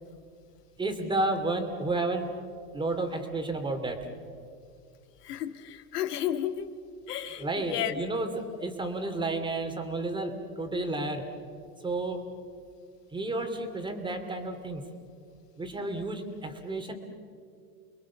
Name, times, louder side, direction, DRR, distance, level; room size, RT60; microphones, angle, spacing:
voice 1, 0.8-2.3 2.7-4.1 7.4-11.3 11.8-12.2 13.1-14.8 15.6-16.9, right 2 dB, 10° right, 5 dB, 2.7 m, -31 dB
voice 2, 5.2-6.7 7.1-8.0, left 10 dB, 70° left, 9 dB, 2.0 m, -32 dB
29.5 x 21.5 x 7.2 m, 2.3 s
hypercardioid pair, 120°, 48 cm